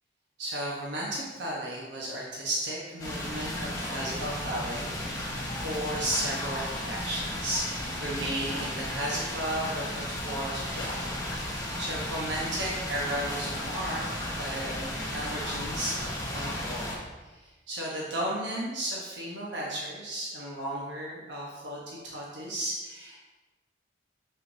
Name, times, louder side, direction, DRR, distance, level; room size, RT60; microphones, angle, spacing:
voice 1, 0.4-15.9 16.3-17.0 17.3-23.2, right 1 dB, 65° right, -4 dB, 1.1 m, -34 dB
sound 1, 3.0-17.0, left 1 dB, 15° left, 1.1 m, -34 dB
6.6 x 6.1 x 2.7 m, 1.2 s
head